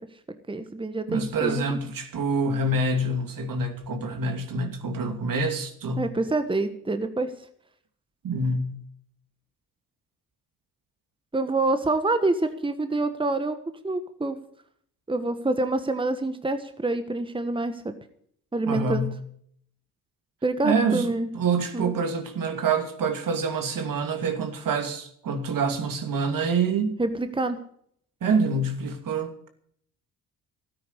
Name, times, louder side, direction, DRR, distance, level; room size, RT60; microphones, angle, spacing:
voice 1, 0.5-1.6 6.0-7.3 11.3-14.4 15.1-17.9 18.5-19.0 20.4-21.3 21.7-21.9 27.0-27.6, right 2 dB, 15° right, 1.3 m, -26 dB
voice 2, 1.1-6.1 8.2-8.8 18.7-19.1 20.6-27.0 28.2-29.5, right 3 dB, 60° right, 2.6 m, -26 dB
13.0 x 9.6 x 8.2 m
supercardioid pair, 70°, 37 cm